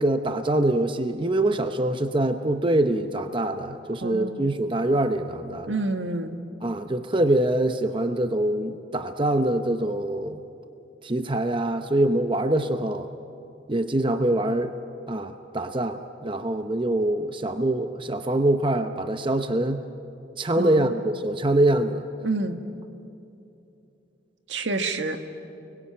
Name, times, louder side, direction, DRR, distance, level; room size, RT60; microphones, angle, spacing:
voice 1, 0.0-5.7 6.6-10.4 11.0-13.1 13.7-14.7 15.1-19.8 20.4-22.0, right 1 dB, 25° right, 8 dB, 0.8 m, -24 dB
voice 2, 4.0-4.4 5.7-6.4 20.6-20.9 22.2-22.6 24.5-25.2, right 3 dB, 75° right, 7 dB, 1.7 m, -28 dB
29.5 x 22.0 x 8.9 m, 2.8 s
head